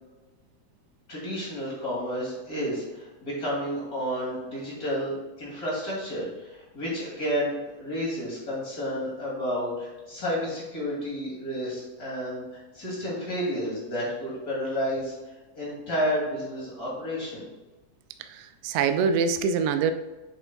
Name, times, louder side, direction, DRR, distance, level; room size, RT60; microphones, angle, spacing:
voice 1, 1.1-12.4 12.7-15.1 15.5-17.4, equal, 30° left, -5 dB, 2.8 m, -31 dB
voice 2, 18.3-19.9, right 6 dB, 80° right, 8 dB, 1.4 m, -24 dB
8.5 x 7.0 x 2.3 m, 1.2 s
omnidirectional pair, 3.3 m